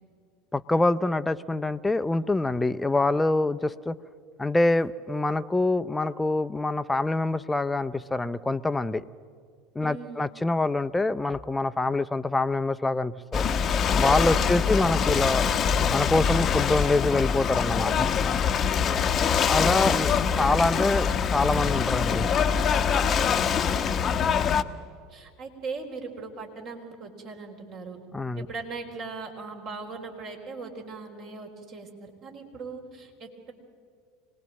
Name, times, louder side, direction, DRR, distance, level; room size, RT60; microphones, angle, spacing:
voice 1, 0.5-4.0 4.4-9.0 9.8-13.4 13.9-15.5 15.9-18.1 19.5-22.3 28.1-28.5, left 2 dB, 10° left, 12 dB, 0.6 m, -25 dB
voice 2, 9.8-10.3 14.2-14.8 18.8-20.3 23.2-23.6 24.2-24.8 25.1-28.0 28.4-33.5, right 4 dB, 50° right, 2 dB, 4.1 m, -40 dB
Ocean / Boat Water vehicle, 13.3-24.6, left 7 dB, 35° left, 0.9 m, -24 dB
25.5 x 19.0 x 7.7 m, 2.2 s
figure-of-eight pair, 75°, 0 cm